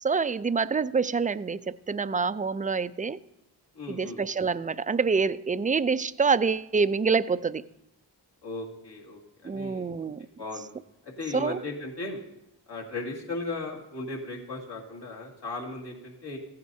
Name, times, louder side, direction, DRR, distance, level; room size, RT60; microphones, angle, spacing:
voice 1, 0.0-3.2 3.9-7.6 9.4-10.3 11.3-11.6, right 5 dB, 20° right, 15 dB, 0.3 m, -26 dB
voice 2, 3.7-4.2 8.4-9.9 10.4-10.7 11.2-12.2 12.7-16.4, left 2 dB, 65° left, -2 dB, 2.1 m, -36 dB
15.0 x 9.4 x 2.7 m, 0.84 s
cardioid pair, 40°, 43 cm